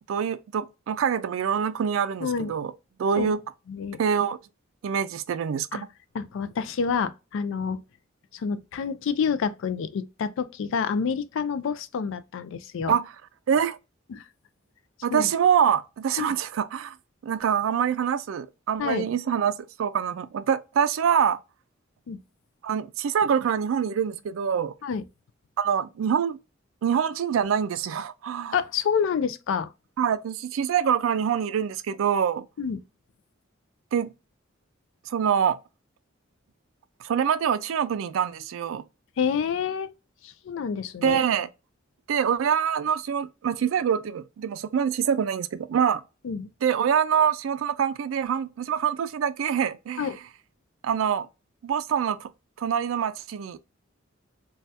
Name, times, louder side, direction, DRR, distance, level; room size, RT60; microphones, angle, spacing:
voice 1, 0.1-2.7 3.0-3.4 4.0-4.4 4.8-5.8 12.9-13.1 13.5-13.8 15.0-17.0 17.2-21.4 22.6-24.7 25.6-26.4 26.8-28.6 30.0-32.5 33.9-34.1 35.1-35.6 37.0-38.8 41.0-41.5 42.1-46.0 46.6-50.1 50.8-51.3 51.6-52.3 52.6-53.6, right 8 dB, 70° right, 0.3 m, -25 dB
voice 2, 2.2-2.5 3.2-3.3 3.7-4.0 5.7-5.8 6.1-7.8 8.3-13.0 14.1-14.2 15.1-15.3 16.2-16.3 18.8-19.0 22.1-22.2 24.8-25.0 28.5-29.7 32.6-32.8 39.2-39.9 40.2-41.2 46.2-46.5 50.0-50.2, left 6 dB, 65° left, 0.3 m, -28 dB
2.7 x 2.3 x 3.1 m
head